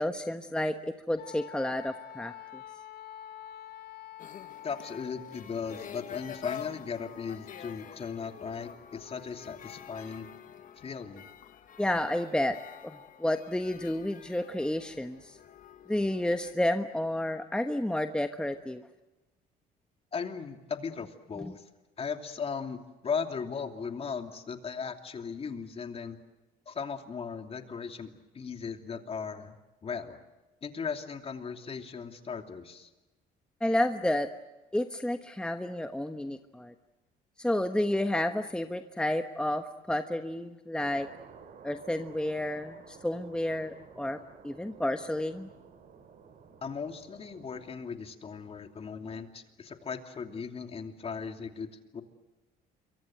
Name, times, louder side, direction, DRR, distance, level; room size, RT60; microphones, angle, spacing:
voice 1, 0.0-2.3 11.8-12.6 12.8-15.4 15.9-18.9 21.4-21.5 33.6-34.3 34.7-36.7 37.4-41.1 41.6-44.2 44.4-45.5, left 1 dB, 5° left, 7 dB, 1.2 m, -30 dB
Wind instrument woodwind instrument, 1.2-5.4, left 11 dB, 70° left, 1.8 m, -46 dB
sound 1, 4.2-16.5, left 9 dB, 50° left, 1.7 m, -47 dB
voice 2, 4.6-10.3 10.8-11.3 20.1-21.6 22.0-26.2 26.7-30.2 30.6-32.9 46.6-52.0, left 6 dB, 35° left, 6 dB, 2.9 m, -37 dB
sound 2, 40.7-47.7, right 6 dB, 55° right, 4.3 m, -53 dB
27.0 x 24.5 x 7.9 m, 1.1 s
cardioid pair, 110°, 17 cm